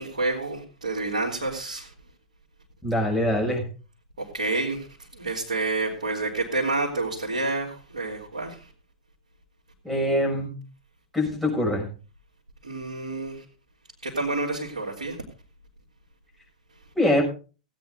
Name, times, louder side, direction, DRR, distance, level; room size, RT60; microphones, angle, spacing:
voice 1, 0.0-1.9 4.2-4.9 5.1-8.6 12.6-13.4 14.0-15.2, right 2 dB, 75° right, -4 dB, 2.9 m, -29 dB
voice 2, 2.8-3.7 9.8-10.5 11.1-11.9 16.9-17.2, left 1 dB, ahead, -3 dB, 6.3 m, -23 dB
16.5 x 9.2 x 3.8 m, 0.35 s
figure-of-eight pair, 100°, 4 cm